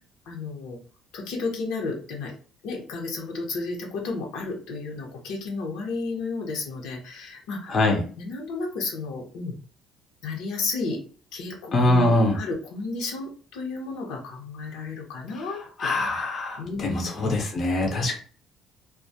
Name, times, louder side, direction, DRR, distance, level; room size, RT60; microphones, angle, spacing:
voice 1, 0.3-0.8 1.1-2.3 2.6-7.8 8.2-9.6 10.2-11.0 11.3-16.3 16.6-17.1 18.1-18.2, left 3 dB, 85° left, 0 dB, 0.8 m, -32 dB
voice 2, 7.7-8.0 11.7-12.4 15.4-15.5 15.8-18.1, left 2 dB, 35° left, 1 dB, 0.6 m, -23 dB
2.3 x 2.1 x 2.6 m, 0.41 s
cardioid pair, 135°, 0 cm